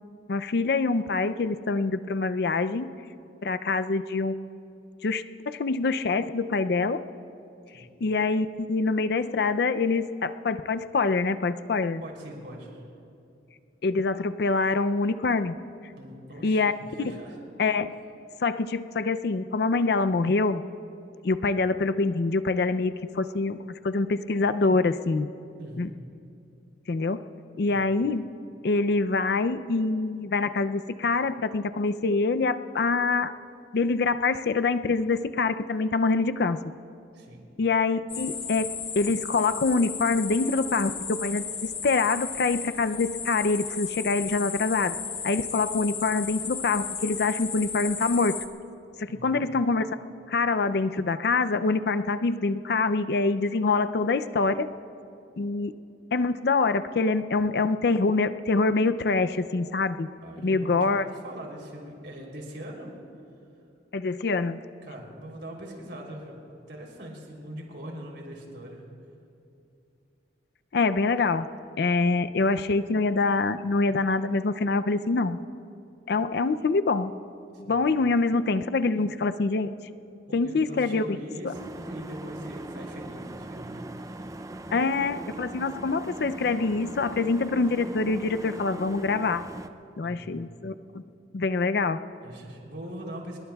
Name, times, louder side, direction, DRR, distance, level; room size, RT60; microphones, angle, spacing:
voice 1, 0.3-2.9 3.4-4.4 5.0-7.0 7.7-12.0 13.8-15.6 16.4-16.7 17.6-17.9 18.4-20.6 21.2-25.3 25.8-25.9 26.9-27.2 27.6-28.3 28.6-33.3 33.7-36.6 37.6-45.0 45.2-48.4 49.0-49.9 50.3-54.7 55.4-55.8 56.1-60.1 60.4-61.1 63.9-64.6 70.7-71.5 71.8-75.4 76.1-77.1 77.7-79.7 80.3-81.1 81.4-81.5 84.7-89.4 90.0-91.0 91.3-92.0, left 3 dB, 55° left, 11 dB, 0.4 m, -25 dB
voice 2, 12.0-12.8 16.0-16.6 17.0-17.4 25.6-25.9 27.7-27.8 37.1-37.4 49.1-49.5 60.2-62.9 64.8-68.8 77.6-77.8 80.3-84.3 90.0-90.5 92.2-93.4, right 1 dB, 65° right, -1 dB, 3.3 m, -41 dB
sound 1, 38.1-48.5, left 6 dB, 30° left, 0.8 m, -35 dB
sound 2, 81.5-89.7, right 1 dB, 15° right, 0.4 m, -40 dB
26.0 x 21.5 x 2.3 m, 2.6 s
head